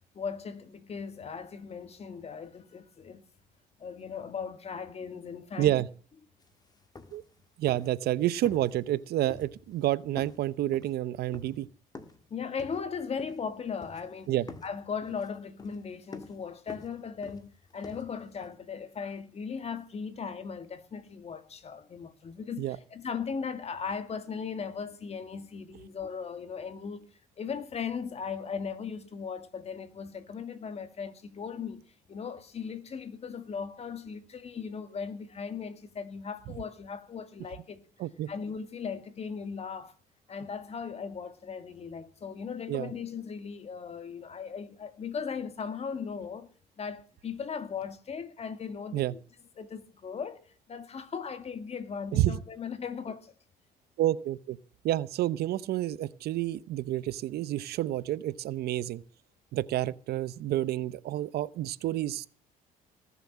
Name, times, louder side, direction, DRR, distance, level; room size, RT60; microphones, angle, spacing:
voice 1, 0.1-3.2 3.8-5.8 12.3-14.4 14.6-27.1 27.4-31.8 32.1-37.8 38.3-39.9 40.3-46.5 46.8-49.2 49.6-53.3, left 6 dB, 40° left, 2.1 m, -38 dB
sound 1, 6.4-6.5 6.8-7.4 7.7-8.1 8.4-9.0 9.3-9.9 10.2-12.3 12.6-13.5 13.8-14.2 14.5-18.5, left 3 dB, 25° left, 1.8 m, -48 dB
voice 2, 7.6-11.7 14.3-14.5 22.6-22.8 38.0-38.3 42.7-42.9 48.9-49.1 52.1-52.3 54.0-54.6 54.8-59.0 59.5-62.3, right 14 dB, 70° right, 0.8 m, -29 dB
19.0 x 7.2 x 7.3 m
cardioid pair, 110°, 17 cm